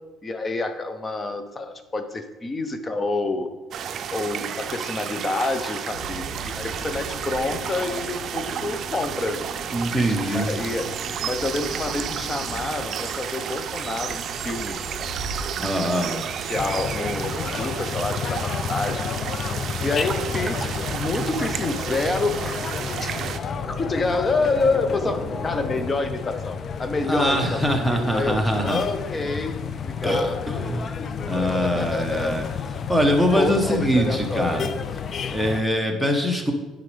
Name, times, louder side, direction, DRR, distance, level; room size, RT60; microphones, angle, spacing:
voice 1, 0.2-3.5 4.1-9.4 10.0-10.9 11.2-14.8 15.6-15.8 16.1-19.2 19.8-22.6 23.0-23.4 23.7-29.6 29.8-30.7 31.0-31.1 31.3-32.4 33.4-34.7, left 3 dB, 25° left, 9 dB, 0.8 m, -28 dB
sound 1, 3.7-23.4, right 8 dB, 55° right, 0.4 m, -32 dB
sound 2, 5.9-25.8, equal, 70° left, 2.5 m, -39 dB
voice 2, 9.7-10.5 15.6-16.2 27.1-28.8 30.0-30.9 31.2-32.4 32.9-34.7 35.3-36.5, equal, 5° left, 4 dB, 1.2 m, -23 dB
sound 3, 16.5-35.6, left 6 dB, 45° left, 0.4 m, -31 dB
9.5 x 5.2 x 3.4 m, 1.1 s
supercardioid pair, 85°, 0 cm